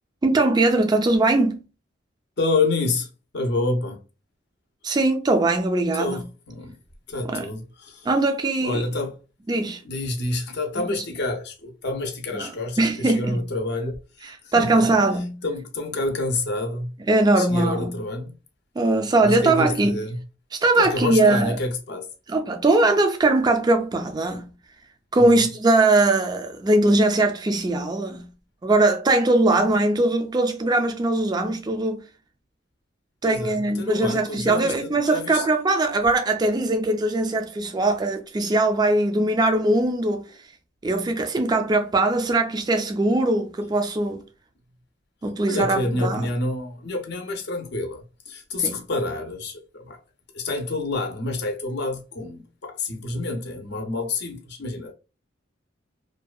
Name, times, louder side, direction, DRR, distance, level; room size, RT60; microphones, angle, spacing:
voice 1, 0.2-1.6 4.8-6.3 7.3-7.5 8.0-8.8 9.5-9.8 10.8-11.0 12.3-13.5 14.2-15.4 17.1-18.0 18.8-20.0 20.5-21.6 22.3-24.5 25.1-28.3 28.6-32.0 33.2-40.2 40.8-44.2 45.2-46.3 48.6-48.8, right 2 dB, 20° right, 0.3 m, -21 dB
voice 2, 2.4-4.0 6.0-6.7 7.1-8.1 8.6-9.1 9.5-14.9 15.4-16.9 17.4-18.3 19.2-20.2 20.7-22.1 25.2-25.4 33.2-35.4 45.5-50.0 50.3-54.9, left 2 dB, 60° left, 0.6 m, -28 dB
2.6 x 2.2 x 2.3 m
head